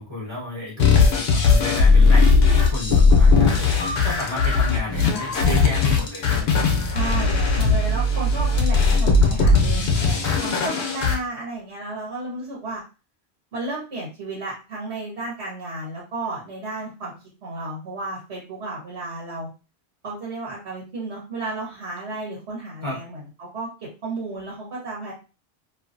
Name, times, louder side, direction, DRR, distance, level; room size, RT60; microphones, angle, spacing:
voice 1, 0.0-6.8 7.0-7.4 22.8-23.0, left 2 dB, 25° right, -4 dB, 1.1 m, -32 dB
sound 1, 0.8-11.2, left 4 dB, 70° left, 0.9 m, -18 dB
voice 2, 6.9-12.8 13.5-17.1 17.4-19.5 20.0-25.1, right 2 dB, 80° right, -4 dB, 1.3 m, -33 dB
2.6 x 2.5 x 2.5 m, 0.32 s
omnidirectional pair, 1.1 m